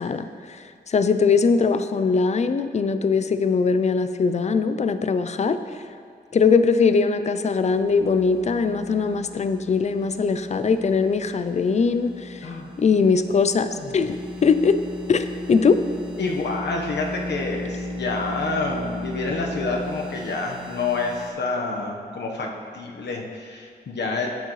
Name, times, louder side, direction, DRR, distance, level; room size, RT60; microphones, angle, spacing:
voice 1, 0.0-5.6 6.3-12.5 12.8-14.8 15.1-15.8, left 5 dB, 40° left, 10 dB, 0.4 m, -21 dB
sound 1, 7.4-21.3, left 1 dB, 5° right, 1.4 m, -36 dB
voice 2, 16.1-24.3, left 3 dB, 85° left, 0 dB, 1.1 m, -28 dB
11.5 x 9.3 x 3.2 m, 2.2 s
wide cardioid pair, 165°, 18 cm